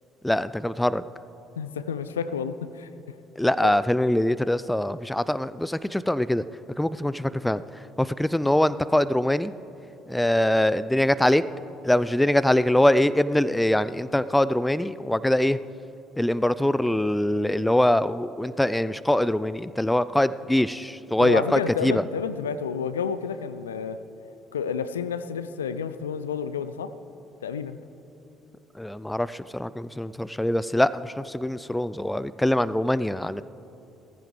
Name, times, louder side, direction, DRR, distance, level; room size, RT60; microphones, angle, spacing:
voice 1, 0.2-1.0 3.4-6.4 6.8-7.6 8.0-9.5 10.1-11.4 11.8-15.6 16.2-22.0 28.8-33.4, left 1 dB, 5° left, 16 dB, 0.4 m, -23 dB
voice 2, 1.6-2.9 3.6-3.7 21.2-24.0 24.5-26.9 27.4-27.8, left 6 dB, 80° left, 13 dB, 0.4 m, -30 dB
17.5 x 15.0 x 3.1 m, 3.0 s
figure-of-eight pair, 50°, 0 cm